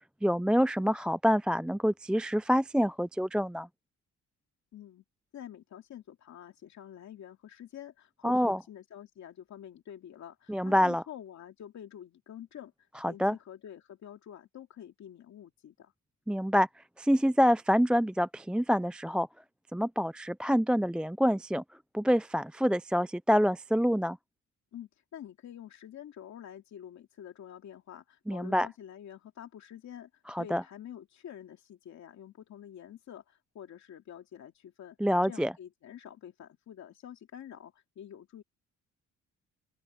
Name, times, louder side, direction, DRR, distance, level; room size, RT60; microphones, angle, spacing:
voice 1, 0.2-3.7 8.2-8.6 10.5-11.0 13.0-13.4 16.3-16.7 17.0-19.3 19.7-21.6 21.9-24.2 28.3-28.7 30.3-30.6 35.0-35.5, equal, 5° right, 0.4 m, -26 dB
voice 2, 4.7-5.0 5.3-15.9 24.7-38.4, left 10 dB, 65° left, 2.6 m, -48 dB
open air
cardioid pair, 90°, 30 cm